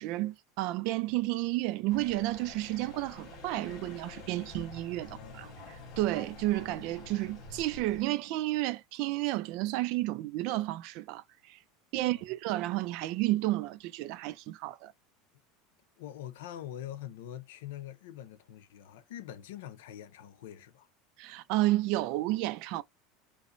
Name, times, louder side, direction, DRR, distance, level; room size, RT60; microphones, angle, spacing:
voice 1, 0.0-5.5 6.0-11.6 11.9-14.9 21.2-22.8, right 17 dB, 45° right, 0.3 m, -31 dB
sound 1, 1.9-8.0, left 3 dB, 25° left, 1.8 m, -48 dB
voice 2, 5.0-5.7 11.9-12.2 16.0-20.9, left 11 dB, 85° left, 0.6 m, -44 dB
5.0 x 2.0 x 2.5 m
supercardioid pair, 175°, 0 cm